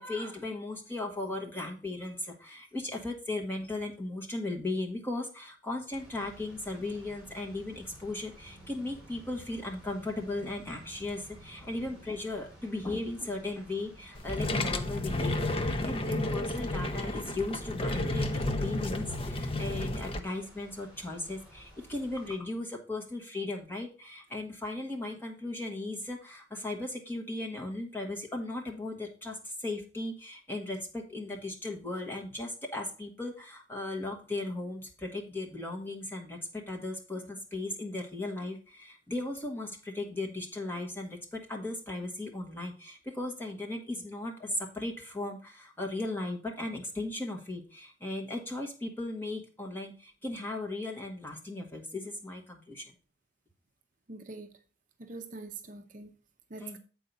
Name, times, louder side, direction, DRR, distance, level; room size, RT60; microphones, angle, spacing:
voice 1, 0.0-52.9 56.6-56.8, left 2 dB, 10° left, 1.4 m, -37 dB
sound 1, 5.9-22.4, equal, 5° right, 3.5 m, -54 dB
sound 2, 14.1-20.2, left 2 dB, 30° left, 0.6 m, -32 dB
voice 2, 54.1-54.5 55.0-56.1 56.5-56.8, right 3 dB, 45° right, 0.6 m, -43 dB
7.7 x 4.6 x 5.3 m
head